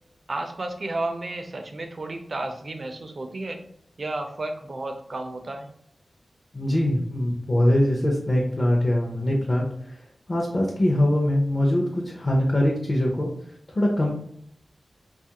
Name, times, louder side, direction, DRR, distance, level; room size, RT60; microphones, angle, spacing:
voice 1, 0.3-3.6 4.0-5.7, right 2 dB, 50° right, 5 dB, 0.4 m, -32 dB
voice 2, 6.5-10.0 10.3-13.3 13.7-14.1, left 1 dB, 40° left, -2 dB, 0.5 m, -22 dB
2.6 x 2.4 x 2.8 m, 0.67 s
wide cardioid pair, 115°, 0 cm